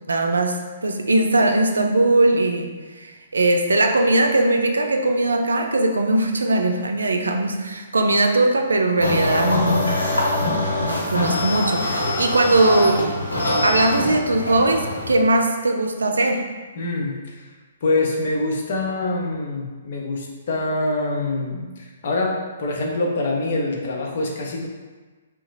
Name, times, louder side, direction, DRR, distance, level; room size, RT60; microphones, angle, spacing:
voice 1, 0.1-2.7 3.0-9.9 10.8-13.0 13.6-16.4, right 2 dB, 80° right, 4 dB, 0.4 m, -20 dB
sound 1, 9.0-15.1, left 1 dB, 85° left, 0.9 m, -24 dB
voice 2, 16.8-17.5 17.8-24.7, left 2 dB, 55° left, -1 dB, 0.7 m, -25 dB
2.8 x 2.2 x 4.0 m, 1.3 s
figure-of-eight pair, 130°, 0 cm